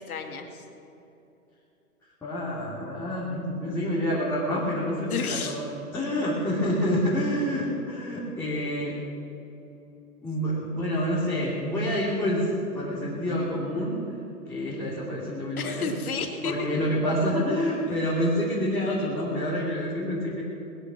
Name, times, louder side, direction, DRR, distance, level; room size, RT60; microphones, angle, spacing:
voice 1, 0.1-0.6 5.1-5.6 15.6-16.7, left 5 dB, 75° left, 4 dB, 2.3 m, -31 dB
voice 2, 2.2-9.0 10.2-12.5 12.7-14.0 14.5-15.9 16.4-20.4, equal, 5° left, -9 dB, 2.6 m, -27 dB
20.5 x 10.0 x 6.3 m, 2.8 s
hypercardioid pair, 150°, 44 cm